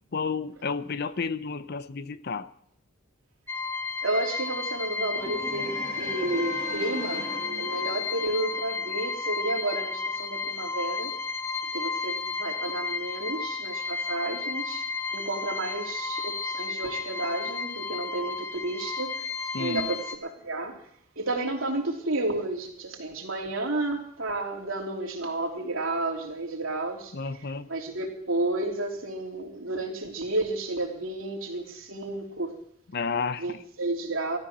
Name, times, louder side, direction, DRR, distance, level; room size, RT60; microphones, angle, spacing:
voice 1, 0.1-2.5 19.5-19.9 27.1-27.7 32.9-33.6, left 4 dB, 50° left, 14 dB, 0.7 m, -31 dB
sound 1, 3.5-20.2, left 4 dB, 10° left, 0.7 m, -33 dB
voice 2, 4.0-7.3 7.6-11.1 11.7-14.8 15.1-19.3 19.6-20.8 21.2-27.1 27.7-32.6 33.4-34.4, right 2 dB, 80° right, 0 dB, 3.1 m, -31 dB
sound 2, 5.1-9.2, right 3 dB, 35° right, 1.7 m, -39 dB
14.0 x 13.5 x 6.1 m, 0.66 s
head